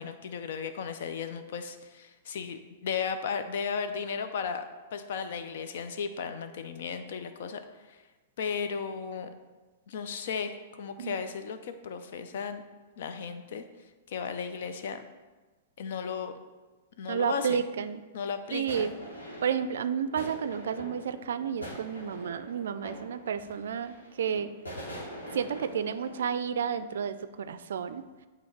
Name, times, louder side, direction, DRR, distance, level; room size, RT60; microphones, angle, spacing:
voice 1, 0.0-4.6 4.9-8.0 8.4-9.3 9.9-12.6 13.0-13.6 14.1-15.0 15.8-16.3 17.0-17.6 18.1-18.9, left 6 dB, 60° left, 8 dB, 0.6 m, -35 dB
voice 2, 17.1-18.0 18.5-18.9 19.4-24.5 25.3-28.1, right 7 dB, 70° right, 12 dB, 0.3 m, -31 dB
sound 1, 18.7-27.2 27.4-27.5, equal, 90° left, 1.8 m, -44 dB
8.4 x 3.0 x 4.6 m, 1.2 s
hypercardioid pair, 110°, 0 cm